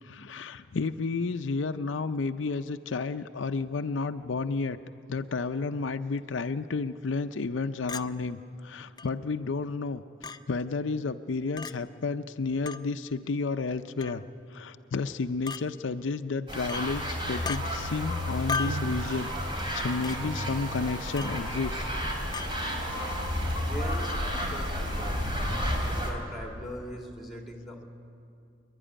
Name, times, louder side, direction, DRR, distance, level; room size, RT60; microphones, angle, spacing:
voice 1, 0.0-4.8 5.1-10.0 10.5-14.2 14.5-21.9, left 4 dB, 75° left, 9 dB, 0.6 m, -31 dB
Chink clink, 7.9-8.1 9.0-9.1 10.2-10.4 11.6-11.7 12.7-12.8 14.0-14.2 15.5-15.6 16.7-16.9 17.4-17.6 18.5-18.8 20.0-20.2 21.2-21.4 22.3-22.5, left 5 dB, 20° left, 0.4 m, -34 dB
sound 1, 16.5-26.1, equal, 25° right, 3.0 m, -32 dB
sound 2, 18.6-24.3, right 3 dB, 85° right, 1.0 m, -42 dB
voice 2, 23.6-25.2 25.9-27.8, equal, ahead, 1 dB, 2.4 m, -41 dB
27.0 x 11.0 x 10.0 m, 2.5 s
head